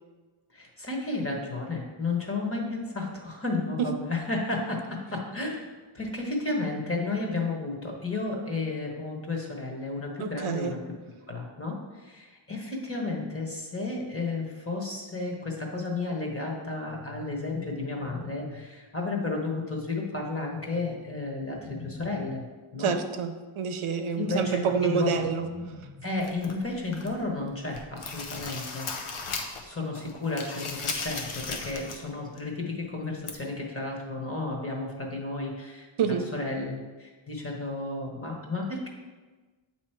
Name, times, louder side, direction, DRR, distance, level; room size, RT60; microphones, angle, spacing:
voice 1, 0.5-5.7 5.9-10.8 11.3-22.4 22.7-22.9 24.2-25.2 26.0-28.9 29.1-29.2 29.6-38.9, left 3 dB, 25° left, 0 dB, 1.2 m, -32 dB
voice 2, 10.2-10.8 22.8-25.5 36.0-36.3, right 6 dB, 75° right, 7 dB, 0.6 m, -27 dB
sound 1, 16.9-18.9 20.5-22.4 24.2-26.2, left 3 dB, 10° left, 0.9 m, -44 dB
sound 2, 26.2-27.2 27.6-29.7 30.0-32.1 32.4-32.5 33.3-33.4, left 4 dB, 85° left, 0.8 m, -36 dB
8.1 x 3.1 x 4.5 m, 1.3 s
wide cardioid pair, 100°, 49 cm